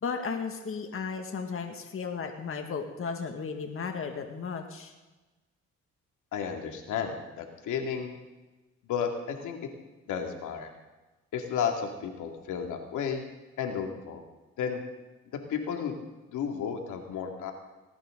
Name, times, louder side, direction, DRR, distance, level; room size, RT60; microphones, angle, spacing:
voice 1, 0.0-4.9, left 5 dB, 45° left, 4 dB, 2.0 m, -35 dB
voice 2, 6.3-8.2 8.8-9.6 10.1-10.7 11.3-13.2 13.6-14.2 14.6-14.8 15.5-16.0 16.3-17.5, left 7 dB, 85° left, 3 dB, 2.5 m, -32 dB
19.0 x 18.5 x 3.9 m, 1.1 s
cardioid pair, 90°, 30 cm